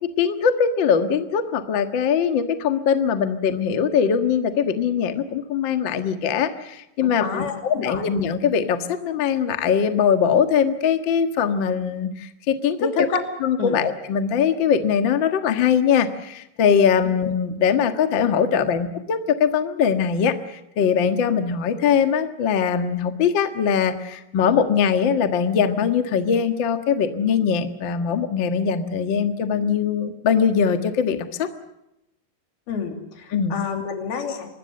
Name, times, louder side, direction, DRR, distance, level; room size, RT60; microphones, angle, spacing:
voice 1, 0.0-13.1 13.4-31.5 33.3-33.5, left 7 dB, 55° left, 8 dB, 1.3 m, -21 dB
voice 2, 7.0-8.1 12.8-13.2 13.6-13.8 32.7-34.5, left 5 dB, 75° left, 5 dB, 4.7 m, -28 dB
26.0 x 20.5 x 6.5 m, 0.86 s
omnidirectional pair, 4.5 m